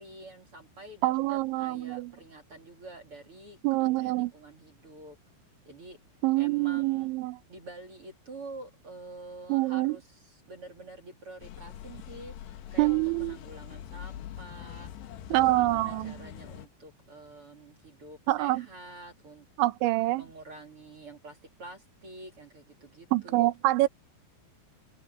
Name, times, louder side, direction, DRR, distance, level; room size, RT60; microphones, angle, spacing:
voice 1, 0.0-5.2 5.6-6.0 6.3-7.1 7.5-12.3 12.7-14.9 15.3-19.7 20.1-23.5, right 2 dB, 35° right, 2.5 m, -47 dB
voice 2, 1.0-2.1 3.6-4.3 6.2-7.4 9.5-10.0 12.8-13.4 15.3-16.2 18.3-18.7 19.6-20.2 23.1-23.9, right 19 dB, 75° right, 3.1 m, -26 dB
sound 1, 11.4-16.7, left 11 dB, 70° left, 2.9 m, -43 dB
omnidirectional pair, 5.9 m